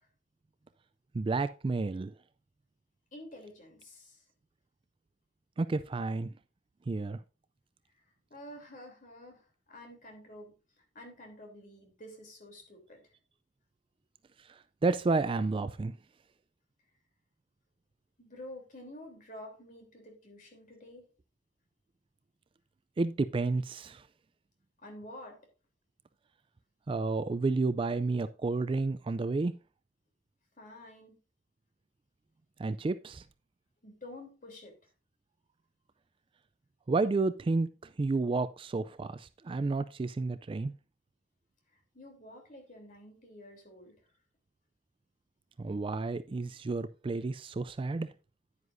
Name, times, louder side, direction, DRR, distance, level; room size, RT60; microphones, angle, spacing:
voice 1, 1.1-2.1 5.6-6.3 6.9-7.2 14.5-16.0 23.0-24.0 26.9-29.5 32.6-33.2 36.9-37.7 38.0-40.7 45.6-48.1, right 3 dB, 25° right, 0.3 m, -31 dB
voice 2, 3.1-4.2 8.3-13.0 18.2-21.0 24.8-25.4 30.6-31.2 33.8-34.7 41.7-43.9, left 1 dB, 45° left, 3.2 m, -49 dB
9.7 x 9.6 x 2.6 m
head